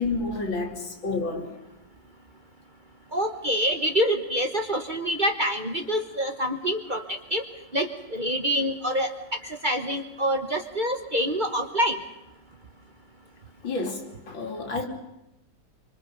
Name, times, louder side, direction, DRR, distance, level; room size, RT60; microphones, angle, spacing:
voice 1, 0.0-1.5 13.6-14.9, left 3 dB, 85° left, 3.5 m, -30 dB
voice 2, 3.1-7.0 7.3-7.4 7.7-9.1 9.6-12.0, equal, 30° right, 1.2 m, -26 dB
25.0 x 25.0 x 5.3 m
omnidirectional pair, 2.1 m